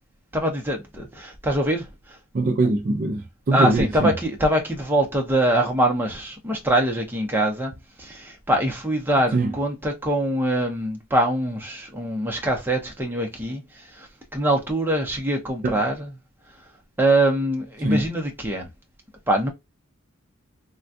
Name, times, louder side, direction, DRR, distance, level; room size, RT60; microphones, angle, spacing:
voice 1, 0.3-2.2 3.5-7.7 8.0-16.1 17.0-18.7 19.3-19.5, right 1 dB, 10° right, 0.7 m, -23 dB
voice 2, 2.3-4.1 9.3-9.5 15.6-15.8 17.8-18.0, right 2 dB, 40° right, 0.4 m, -22 dB
3.4 x 2.3 x 2.6 m
head